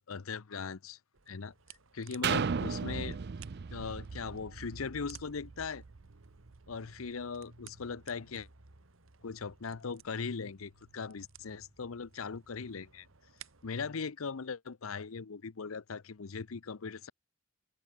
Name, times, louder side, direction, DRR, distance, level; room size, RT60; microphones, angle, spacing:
voice 1, 0.1-1.0 1.3-1.5 1.9-3.2 3.7-5.8 6.7-8.5 9.2-13.1 13.6-17.1, left 5 dB, 85° left, 0.7 m, -39 dB
sound 1, 1.1-13.8, right 7 dB, 70° right, 1.8 m, -58 dB
sound 2, 2.2-6.0 6.5-6.6, right 6 dB, 55° right, 0.5 m, -35 dB
head